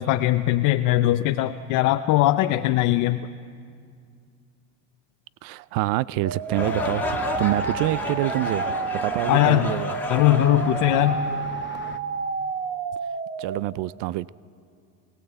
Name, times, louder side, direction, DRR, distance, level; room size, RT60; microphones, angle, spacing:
voice 1, 0.0-3.3 9.3-9.7 10.1-11.2, left 14 dB, 60° left, 7 dB, 0.7 m, -20 dB
voice 2, 5.4-10.0 13.4-14.3, right 17 dB, 70° right, 20 dB, 0.5 m, -27 dB
sound 1, 6.2-13.6, right 5 dB, 30° right, 1.1 m, -30 dB
sound 2, 6.4-11.7, left 3 dB, 5° left, 1.8 m, -33 dB
Traffic noise roadway noise, 6.6-12.0, left 8 dB, 35° left, 0.9 m, -38 dB
24.5 x 18.5 x 8.0 m, 2.2 s
cardioid pair, 130°, 35 cm